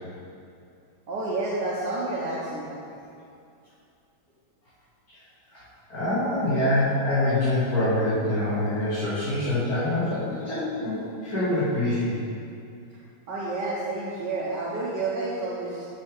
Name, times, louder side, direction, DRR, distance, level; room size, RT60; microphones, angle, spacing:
voice 1, 1.1-2.7 13.3-15.9, right 2 dB, 65° right, -6 dB, 1.7 m, -29 dB
voice 2, 5.9-12.1, left 1 dB, 50° left, -13 dB, 3.0 m, -25 dB
11.5 x 7.4 x 3.6 m, 2.6 s
omnidirectional pair, 2.1 m